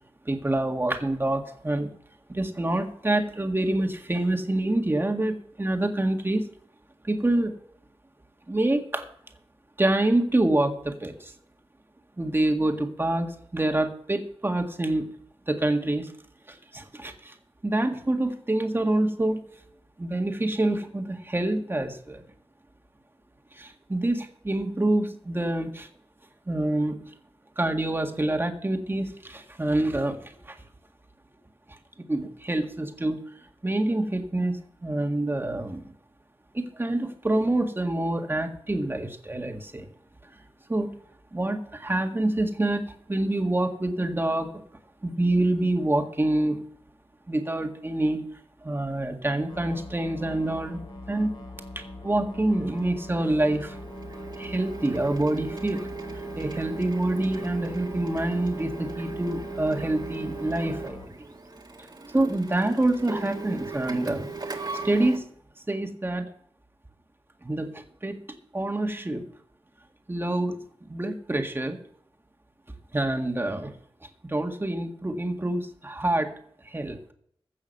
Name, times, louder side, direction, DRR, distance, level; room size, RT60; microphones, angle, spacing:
voice 1, 0.3-1.9 2.3-6.4 7.0-7.5 8.5-9.1 9.8-11.3 12.2-15.1 15.5-16.1 16.5-17.3 17.6-19.4 20.0-22.2 23.6-25.9 26.5-27.0 27.6-30.6 32.1-33.2 33.6-35.9 36.5-39.9 40.7-41.0 41.3-44.5 45.0-46.6 47.3-48.2 48.6-50.8 51.1-51.3 51.8-53.8 54.4-55.8 56.1-61.0 62.1-64.3 64.8-65.3 65.7-66.3 67.4-68.2 68.5-69.2 70.1-70.6 70.9-71.8 72.9-73.7 74.2-76.3 76.7-77.0, right 1 dB, 25° right, 4 dB, 1.8 m, -26 dB
sound 1, 49.5-61.1, left 2 dB, 55° left, 2.9 m, -42 dB
Printer, 52.7-65.2, right 4 dB, 45° right, 1.9 m, -38 dB
15.0 x 6.3 x 6.8 m, 0.64 s
wide cardioid pair, 85°, 10 cm